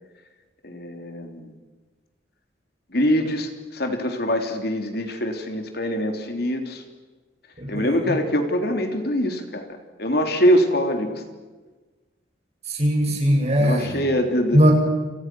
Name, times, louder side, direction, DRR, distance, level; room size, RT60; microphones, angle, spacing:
voice 1, 0.6-1.5 2.9-6.8 7.7-11.2 13.6-14.6, equal, 55° left, 5 dB, 3.4 m, -24 dB
voice 2, 7.6-8.1 12.7-14.0 14.5-14.7, equal, 35° right, 1 dB, 7.1 m, -20 dB
29.5 x 29.5 x 6.3 m, 1.3 s
head